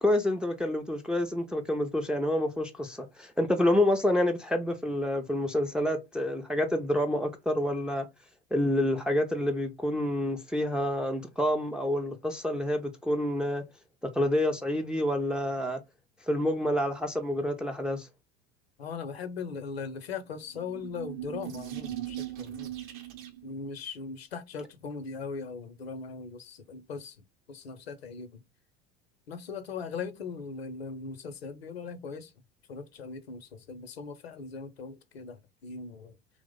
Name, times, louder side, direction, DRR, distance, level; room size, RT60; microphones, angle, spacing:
voice 1, 0.0-8.1 8.5-13.6 14.1-15.8 16.3-18.1, left 1 dB, 5° right, 0.3 m, -28 dB
voice 2, 18.8-22.7 23.4-27.2 27.5-28.4 29.3-32.3 32.7-36.2, left 5 dB, 75° left, 0.6 m, -39 dB
sound 1, 20.4-23.6, right 15 dB, 45° right, 0.6 m, -39 dB
2.9 x 2.0 x 3.5 m
figure-of-eight pair, 70°, 31 cm